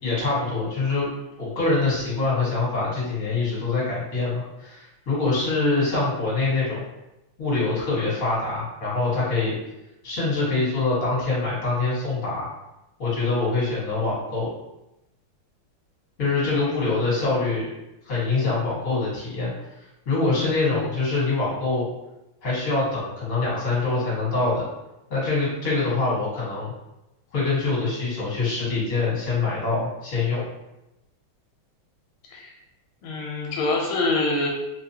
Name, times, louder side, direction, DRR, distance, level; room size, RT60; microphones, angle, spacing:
voice 1, 0.0-1.1 1.4-6.9 7.4-9.6 10.0-12.5 13.0-14.5 16.2-17.7 18.1-19.5 20.1-21.9 22.4-24.7 25.1-26.7 27.3-30.4, left 3 dB, 40° left, -7 dB, 1.8 m, -24 dB
voice 2, 33.0-34.5, left 2 dB, 85° left, -1 dB, 1.5 m, -25 dB
4.0 x 2.3 x 2.8 m, 0.91 s
omnidirectional pair, 2.3 m